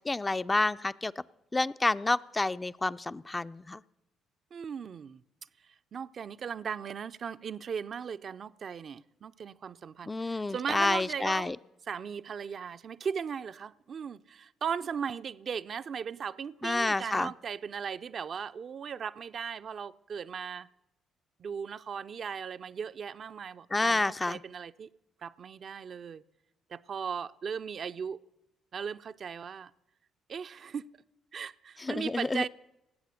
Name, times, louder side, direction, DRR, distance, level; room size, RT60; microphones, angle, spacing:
voice 1, 0.1-1.1 1.5-3.8 10.1-11.6 16.6-17.3 23.7-24.4 31.8-32.4, left 2 dB, 20° left, 0.4 m, -29 dB
voice 2, 4.5-5.2 5.9-11.5 11.9-20.7 21.4-24.9 25.2-26.2 26.7-28.2 28.7-29.7 30.3-30.9 31.3-32.5, right 7 dB, 50° right, 0.4 m, -37 dB
18.5 x 8.0 x 6.4 m
hypercardioid pair, 45°, 0 cm